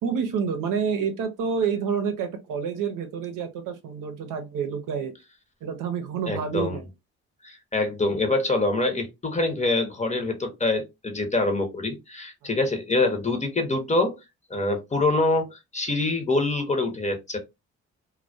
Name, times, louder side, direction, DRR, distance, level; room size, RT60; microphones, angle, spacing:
voice 1, 0.0-5.1 5.6-6.9 12.4-12.5, right 6 dB, 65° right, 0.7 m, -28 dB
voice 2, 6.3-6.8 7.4-14.1 14.5-17.4, left 2 dB, 20° left, 0.8 m, -25 dB
2.2 x 2.1 x 2.6 m
hypercardioid pair, 55°, 34 cm